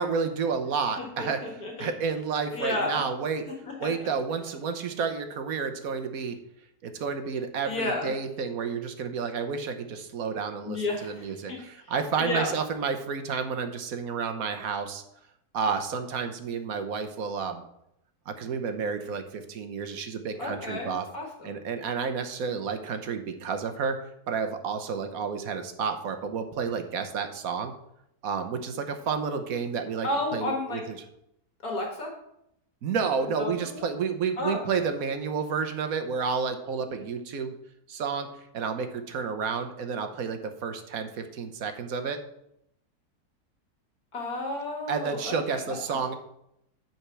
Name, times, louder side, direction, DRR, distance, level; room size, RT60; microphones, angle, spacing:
voice 1, 0.0-1.4 1.8-3.4 3.8-6.4 6.8-15.0 15.5-17.6 18.3-21.0 21.4-24.0 24.3-27.7 28.2-30.8 32.8-37.5 37.9-38.3 38.5-42.2 44.9-46.1, right 5 dB, 65° right, 7 dB, 1.3 m, -30 dB
voice 2, 1.0-1.9 2.5-3.0 3.6-3.9 7.7-8.1 10.6-11.6 11.8-11.9 12.2-12.5 20.4-21.5 30.0-30.8 31.6-32.1 33.4-33.8 34.4-34.8 37.0-37.1 44.1-45.6 45.9-46.2, left 2 dB, 70° left, 0 dB, 2.1 m, -32 dB
9.9 x 4.4 x 6.0 m, 0.78 s
omnidirectional pair, 1.7 m